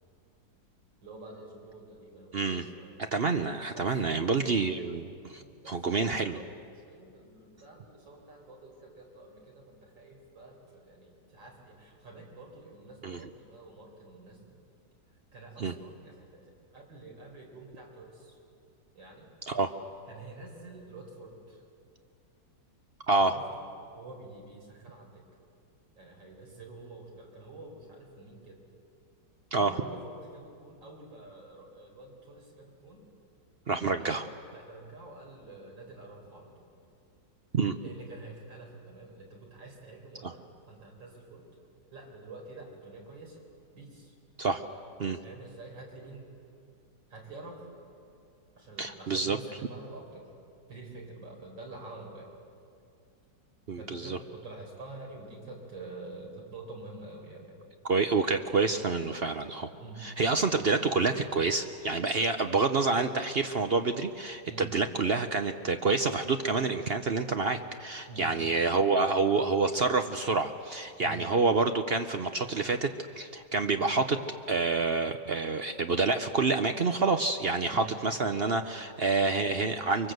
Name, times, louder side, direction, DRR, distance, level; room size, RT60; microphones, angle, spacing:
voice 1, 1.0-3.0 3.7-4.7 5.4-6.5 6.9-14.6 15.3-18.3 19.0-19.3 20.1-21.6 23.1-23.6 23.9-25.2 26.0-28.6 29.5-33.0 33.9-34.2 34.5-36.7 37.8-41.4 41.9-43.4 43.7-44.1 45.2-46.3 47.1-47.6 48.6-50.3 50.7-52.3 53.8-57.6 59.8-60.0 64.5-64.7 68.1-68.5 71.0-71.2 73.8-73.9 77.7-77.9, right 2 dB, 90° right, 0 dB, 5.3 m, -47 dB
voice 2, 2.3-2.7 3.1-6.4 13.0-13.2 15.6-15.7 19.5-19.7 23.1-23.4 29.5-29.7 33.7-34.3 37.5-37.8 40.2-40.3 44.4-44.6 45.0-45.2 48.8-49.4 53.7-54.2 57.8-59.7 60.0-72.9 73.2-74.2 74.5-80.1, right 4 dB, 50° right, 7 dB, 0.7 m, -28 dB
24.5 x 23.0 x 7.9 m, 2.4 s
omnidirectional pair, 1.9 m